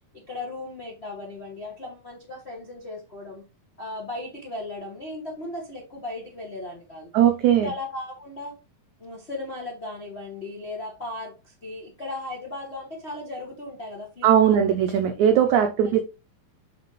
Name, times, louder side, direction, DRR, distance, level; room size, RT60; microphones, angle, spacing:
voice 1, 0.1-3.4 3.8-7.1 7.6-8.5 9.0-14.6 15.8-16.0, left 2 dB, 60° left, -2 dB, 0.6 m, -36 dB
voice 2, 7.1-7.7 14.2-16.0, right 9 dB, 90° right, 7 dB, 1.6 m, -19 dB
7.9 x 5.2 x 3.0 m, 0.28 s
omnidirectional pair, 4.2 m